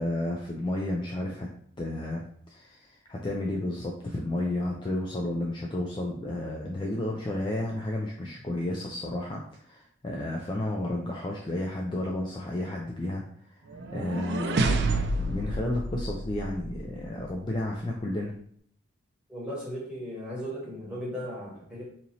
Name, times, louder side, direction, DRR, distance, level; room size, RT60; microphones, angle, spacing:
voice 1, 0.0-1.5 1.8-13.2 13.5-13.6 13.9-18.3, left 1 dB, 25° left, -1 dB, 0.3 m, -32 dB
sound 1, 13.7-16.9, right 2 dB, 55° right, 0.4 m, -29 dB
voice 2, 19.3-21.9, equal, 5° right, -7 dB, 1.2 m, -36 dB
2.9 x 2.7 x 4.0 m, 0.63 s
head